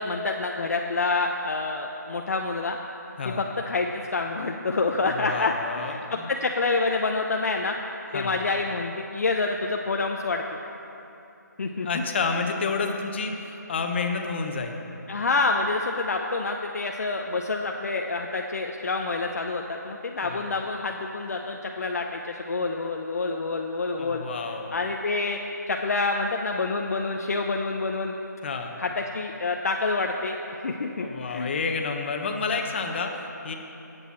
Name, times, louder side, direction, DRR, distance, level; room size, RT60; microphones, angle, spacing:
voice 1, 0.0-2.8 3.2-7.7 8.1-10.6 11.6-11.9 15.1-24.2 24.7-25.4 25.7-28.1 28.8-31.5, left 3 dB, 55° left, 2 dB, 0.7 m, -27 dB
voice 2, 5.0-6.3 8.1-8.4 11.8-14.8 20.2-20.5 24.0-24.7 28.4-28.7 31.0-33.5, left 4 dB, 35° left, 3 dB, 1.2 m, -30 dB
18.0 x 8.2 x 4.4 m, 2.9 s
figure-of-eight pair, 155°, 10 cm